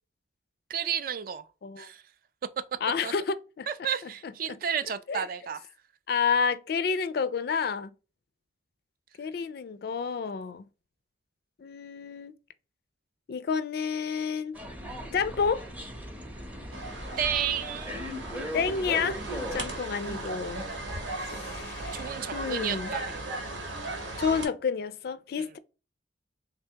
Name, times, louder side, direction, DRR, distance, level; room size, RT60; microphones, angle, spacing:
voice 1, 0.7-1.5 1.8-2.0 3.0-3.1 3.7-5.6 17.2-18.0 21.9-23.2 25.4-25.5, right 8 dB, 50° right, 0.3 m, -32 dB
voice 2, 2.8-3.7 4.5-4.6 5.1-5.2 6.1-7.9 9.2-10.7 11.6-12.3 13.3-14.6 15.1-15.7 18.5-19.2 19.5-20.7 21.1-22.9 24.2-25.6, left 6 dB, 55° left, 0.3 m, -30 dB
sound 1, 14.5-19.8, equal, 10° right, 0.6 m, -38 dB
sound 2, 16.7-24.5, right 2 dB, 90° right, 1.1 m, -37 dB
3.4 x 3.3 x 2.8 m
head